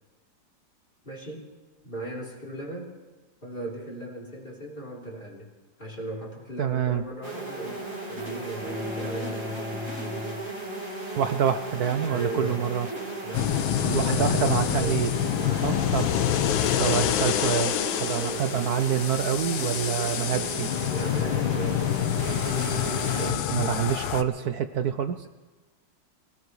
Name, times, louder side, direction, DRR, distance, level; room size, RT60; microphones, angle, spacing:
voice 1, 1.0-1.5 1.8-3.0 3.4-5.5 5.8-9.9 12.1-12.6 13.2-17.1 18.2-18.5 20.9-21.9 23.1-24.0, right 1 dB, 25° left, -1 dB, 3.8 m, -38 dB
voice 2, 6.6-7.0 11.2-12.9 13.9-15.1 15.6-16.1 16.8-20.7 23.2-25.3, right 8 dB, 65° right, 9 dB, 1.0 m, -27 dB
sound 1, 7.2-23.3, right 2 dB, 35° right, 4.5 m, -35 dB
sound 2, 8.6-11.2, left 2 dB, ahead, 0.8 m, -36 dB
sound 3, 13.3-24.2, left 11 dB, 80° left, 1.5 m, -27 dB
24.5 x 18.0 x 3.2 m, 1.3 s
omnidirectional pair, 2.3 m